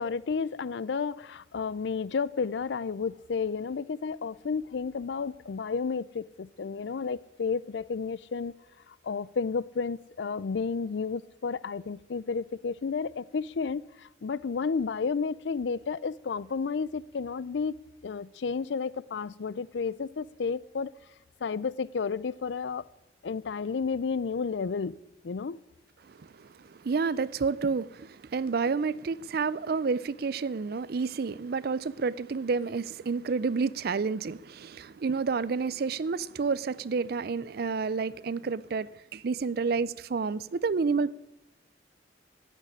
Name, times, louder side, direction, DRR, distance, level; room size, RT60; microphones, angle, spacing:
voice 1, 0.0-8.5 9.0-17.7 18.0-20.9 21.4-22.9 23.2-25.6, left 5 dB, 80° left, 0.5 m, -32 dB
voice 2, 26.1-41.1, right 4 dB, 60° right, 0.4 m, -30 dB
15.5 x 6.6 x 9.9 m
head